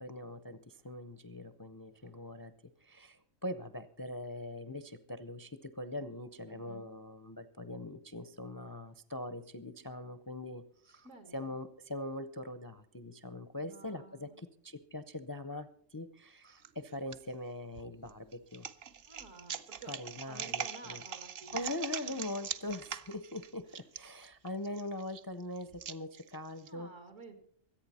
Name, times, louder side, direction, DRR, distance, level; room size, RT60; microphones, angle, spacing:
voice 1, 0.0-2.5 2.8-11.1 11.3-18.7 19.9-21.0 21.5-26.9, left 1 dB, 30° left, 12 dB, 0.4 m, -42 dB
voice 2, 6.5-6.9 11.0-11.6 13.6-14.4 19.1-20.0 20.3-21.7 22.1-22.3 23.7-23.8 26.7-27.4, right 3 dB, 80° right, 6 dB, 2.6 m, -53 dB
sound 1, 16.6-17.2 17.7-26.7, right 8 dB, 55° right, 0.8 m, -42 dB
24.5 x 8.8 x 4.2 m, 0.63 s
omnidirectional pair, 1.3 m